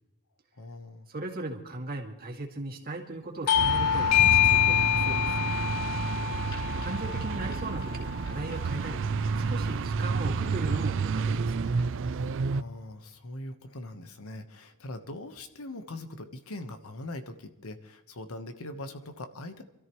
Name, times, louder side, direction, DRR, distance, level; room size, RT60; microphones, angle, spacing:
voice 1, 0.5-1.1 6.2-6.4 12.5-19.6, left 2 dB, 70° left, 8 dB, 1.2 m, -41 dB
voice 2, 1.1-5.4 6.8-9.0 9.4-11.8, right 2 dB, 45° right, 0 dB, 2.2 m, -38 dB
Bell / Doorbell, 3.5-8.6, left 11 dB, 85° left, 0.5 m, -26 dB
sound 1, 3.6-12.6, right 5 dB, 60° right, 0.4 m, -30 dB
sound 2, 3.7-12.1, equal, 25° left, 6.7 m, -47 dB
27.0 x 13.5 x 3.1 m, 0.95 s
head